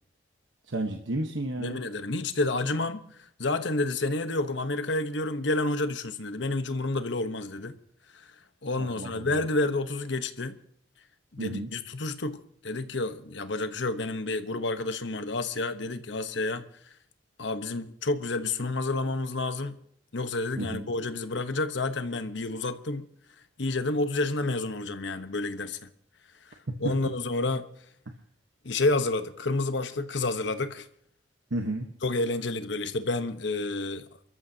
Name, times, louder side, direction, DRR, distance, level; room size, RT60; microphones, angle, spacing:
voice 1, 0.7-1.8 8.8-9.3 11.4-11.7 20.6-20.9 31.5-31.9, right 1 dB, 70° right, 1.2 m, -32 dB
voice 2, 1.6-3.0 3.4-7.8 8.1-8.3 8.6-10.6 11.3-12.4 12.6-16.6 17.4-19.8 20.1-23.1 23.6-25.9 26.8-27.7 28.6-30.9 32.0-34.0, left 2 dB, 65° left, 1.1 m, -29 dB
29.0 x 14.0 x 2.8 m
head